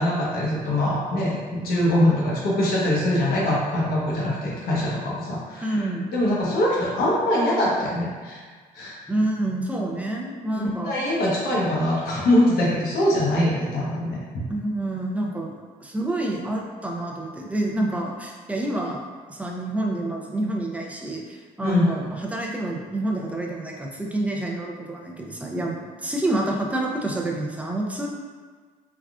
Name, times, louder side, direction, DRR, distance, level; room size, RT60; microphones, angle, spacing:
voice 1, 0.0-5.7 6.1-8.4 8.7-9.0 10.5-14.2 21.6-21.9, left 1 dB, 75° left, -5 dB, 0.9 m, -23 dB
voice 2, 5.6-6.1 9.1-11.0 14.5-15.5 15.8-19.0 19.3-28.1, right 1 dB, 10° right, -1 dB, 0.4 m, -28 dB
3.4 x 2.4 x 2.3 m, 1.5 s
cardioid pair, 95°, 16 cm